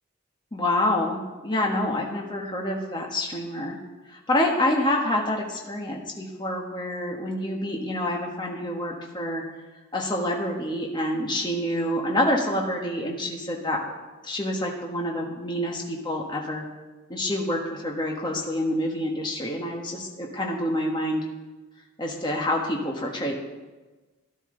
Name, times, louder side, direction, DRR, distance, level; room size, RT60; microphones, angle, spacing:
voice 1, 0.5-3.8 4.1-9.4 9.9-13.8 14.2-16.7 17.1-21.2 22.0-23.3, left 1 dB, 20° left, 0 dB, 1.3 m, -27 dB
13.0 x 12.5 x 3.9 m, 1.2 s
head